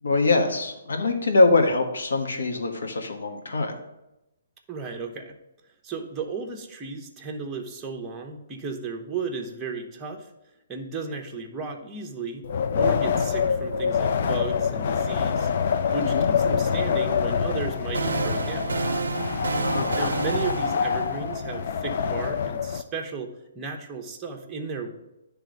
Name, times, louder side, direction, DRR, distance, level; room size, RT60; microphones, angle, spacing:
voice 1, 0.0-3.7 16.0-16.3 19.6-19.9, left 3 dB, 80° left, 4 dB, 1.4 m, -23 dB
voice 2, 4.7-5.4 5.8-10.3 10.7-12.5 12.7-15.5 15.9-18.8 20.0-23.3 23.5-24.9, right 5 dB, 15° right, 1 dB, 1.0 m, -34 dB
Wind, 12.4-22.8, left 6 dB, 55° left, 0.5 m, -26 dB
sound 1, 17.5-21.7, right 5 dB, 85° right, 0.4 m, -30 dB
9.8 x 3.4 x 5.2 m, 0.92 s
hypercardioid pair, 155°, 0 cm